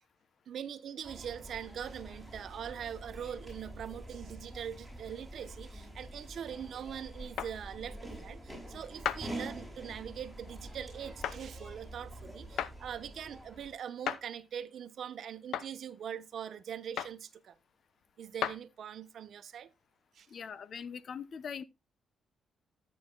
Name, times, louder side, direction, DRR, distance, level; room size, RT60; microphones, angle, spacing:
voice 1, 0.5-17.5 18.2-19.7 20.2-20.3, right 8 dB, 65° right, 1.0 m, -42 dB
sound 1, 1.0-13.8, right 1 dB, 5° left, 6.8 m, -46 dB
sound 2, 7.4-7.5 9.1-9.3 11.2-11.4 12.6-12.8 14.1-14.2 15.5-15.7 17.0-17.2 18.4-18.6, left 9 dB, 80° left, 0.8 m, -33 dB
voice 2, 20.3-21.6, left 6 dB, 55° left, 0.8 m, -41 dB
13.5 x 8.8 x 2.3 m
cardioid pair, 100°, 0 cm